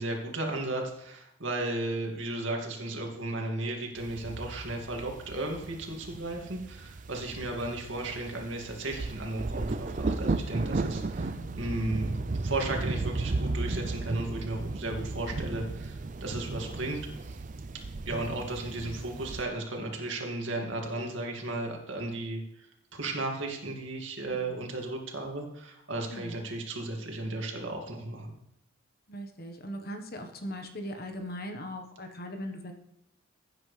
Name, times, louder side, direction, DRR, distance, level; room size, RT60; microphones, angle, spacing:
voice 1, 0.0-17.4 18.1-28.3, right 2 dB, 60° right, 1 dB, 2.3 m, -35 dB
sound 1, 4.0-19.4, right 3 dB, 35° right, 0.5 m, -35 dB
voice 2, 24.3-24.6 26.1-26.4 29.1-32.7, equal, 45° left, 5 dB, 1.3 m, -40 dB
16.0 x 9.3 x 3.4 m, 0.80 s
head